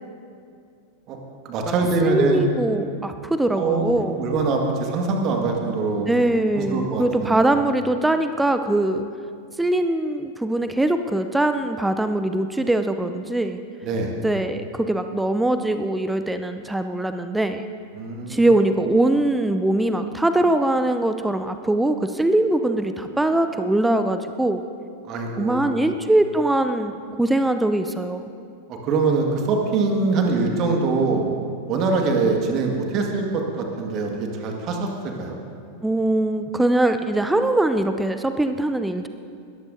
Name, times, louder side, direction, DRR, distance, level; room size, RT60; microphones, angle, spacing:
voice 1, 1.5-2.5 3.5-6.1 6.5-7.4 13.8-14.1 17.9-18.4 25.1-25.9 28.7-31.2 31.7-35.4, right 3 dB, 35° right, 2 dB, 1.8 m, -23 dB
voice 2, 2.0-4.2 6.1-9.0 9.6-13.6 14.2-17.6 18.3-24.6 25.4-28.2 35.8-39.1, right 1 dB, 5° right, 8 dB, 0.5 m, -22 dB
20.0 x 14.0 x 2.7 m, 2.3 s
figure-of-eight pair, 90°, 0 cm